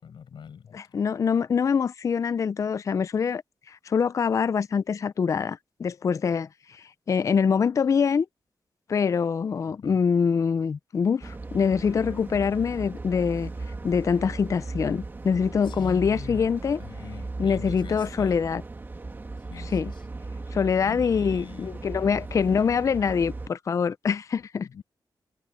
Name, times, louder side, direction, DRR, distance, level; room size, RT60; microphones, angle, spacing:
voice 1, 0.0-1.0 9.8-10.0 15.6-16.5 16.8-18.6 19.5-20.0 20.8-22.3 24.7-24.8, left 7 dB, 75° left, 6.2 m, -44 dB
voice 2, 0.7-3.4 3.7-8.3 8.9-13.5 13.8-16.8 17.4-18.6 19.6-19.9 20.5-24.7, left 6 dB, 40° left, 0.4 m, -24 dB
sound 1, 11.2-23.5, right 3 dB, 25° right, 1.5 m, -37 dB
wide cardioid pair, 150°, 8 cm